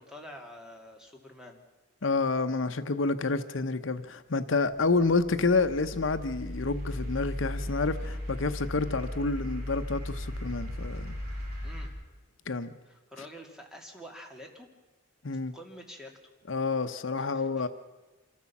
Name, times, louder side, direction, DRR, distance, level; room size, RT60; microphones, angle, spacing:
voice 1, 0.0-1.6 11.6-11.9 12.8-14.7 15.5-16.2 17.2-17.7, equal, 5° right, 2.5 m, -47 dB
voice 2, 2.0-11.2 12.5-12.7 15.2-15.5 16.5-17.7, left 3 dB, 65° left, 0.8 m, -29 dB
sound 1, 4.7-11.9, left 1 dB, 50° right, 5.2 m, -37 dB
26.5 x 14.0 x 7.2 m
head